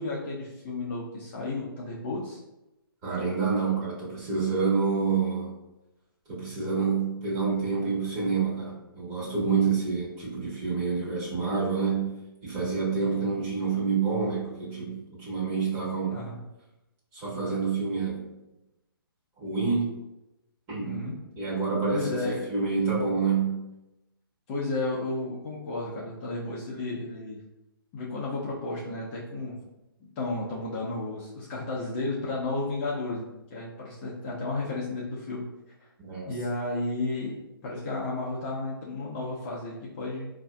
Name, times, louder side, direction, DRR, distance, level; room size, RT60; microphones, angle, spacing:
voice 1, 0.0-2.4 13.0-13.1 16.1-16.4 20.8-21.2 21.9-22.5 24.5-27.4 27.9-29.6 30.2-35.4 35.8-35.9 36.2-40.3, left 2 dB, 25° left, -6 dB, 0.7 m, -33 dB
voice 2, 3.0-5.5 6.3-12.1 12.4-16.2 17.1-18.2 19.4-19.9 20.7-21.0 21.4-22.2 22.5-23.6 36.0-36.3, right 5 dB, 25° right, -7 dB, 1.4 m, -28 dB
4.8 x 2.6 x 2.3 m, 0.97 s
figure-of-eight pair, 140°, 12 cm